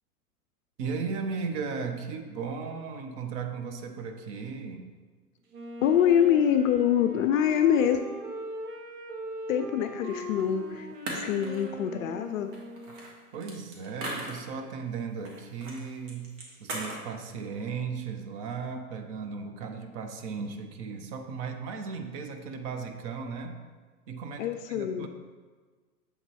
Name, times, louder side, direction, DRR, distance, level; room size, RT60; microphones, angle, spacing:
voice 1, 0.8-4.9 13.3-23.6 24.1-25.1, right 5 dB, 25° right, 6 dB, 0.3 m, -36 dB
Wind instrument woodwind instrument, 5.5-13.2, right 1 dB, 85° right, 1.2 m, -40 dB
voice 2, 5.8-8.0 9.5-12.5 24.4-25.1, left 9 dB, 60° left, 8 dB, 0.5 m, -25 dB
sound 1, 10.4-10.5 11.1-11.9 12.5-14.7 15.2-15.8 16.1-17.1, right 2 dB, 45° right, 1.9 m, -38 dB
7.7 x 3.9 x 4.6 m, 1.4 s
hypercardioid pair, 110°, 45 cm